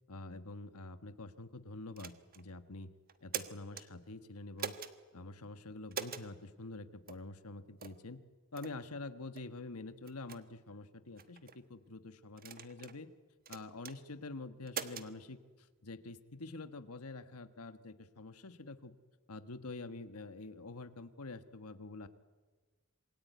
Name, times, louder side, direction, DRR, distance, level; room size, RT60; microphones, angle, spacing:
voice 1, 0.1-2.9 3.2-4.8 5.1-8.2 8.5-13.1 13.5-19.0 19.3-22.1, left 2 dB, 85° left, 10 dB, 1.4 m, -47 dB
sound 1, 2.0-2.4 3.1-3.9 4.6-4.9 5.9-6.3 7.1-7.2 7.8-8.0 8.6-8.8 9.4-9.5 10.1-10.4 11.2-11.6 12.4-13.0 13.5-14.0 14.7-15.1, right 7 dB, 45° right, 1.3 m, -42 dB
27.0 x 22.0 x 9.3 m, 1.4 s
head